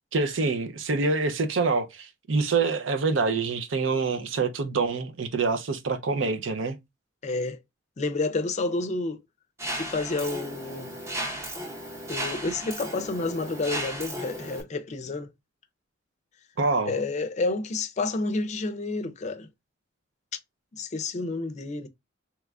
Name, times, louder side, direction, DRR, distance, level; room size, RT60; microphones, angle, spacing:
voice 1, 0.1-6.8 16.6-16.9, right 4 dB, 85° right, 0.5 m, -26 dB
voice 2, 7.2-7.6 8.0-9.2 9.7-10.9 12.1-15.3 16.9-19.5 20.7-21.9, left 3 dB, 35° left, 0.4 m, -29 dB
Mechanisms, 9.6-14.6, right 1 dB, 15° right, 0.6 m, -35 dB
3.0 x 2.4 x 3.2 m
head